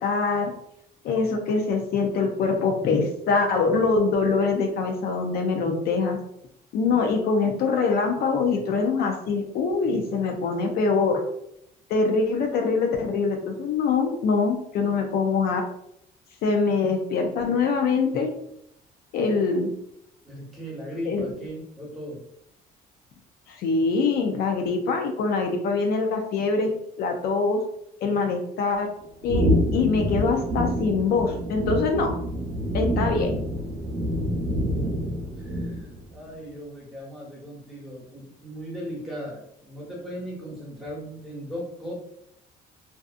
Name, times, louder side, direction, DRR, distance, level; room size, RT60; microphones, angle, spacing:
voice 1, 0.0-0.5 1.0-6.2 6.7-11.2 11.9-15.6 16.4-18.3 19.1-19.7 21.1-21.3 23.5-26.7 27.0-27.6 28.0-28.9 29.2-32.1 32.7-33.4, left 4 dB, 65° left, 3 dB, 0.5 m, -24 dB
voice 2, 20.2-22.2 34.8-41.9, equal, ahead, -5 dB, 1.1 m, -38 dB
sound 1, 29.3-36.0, equal, 75° right, 0.6 m, -26 dB
2.6 x 2.2 x 2.4 m, 0.74 s
cardioid pair, 110°, 17 cm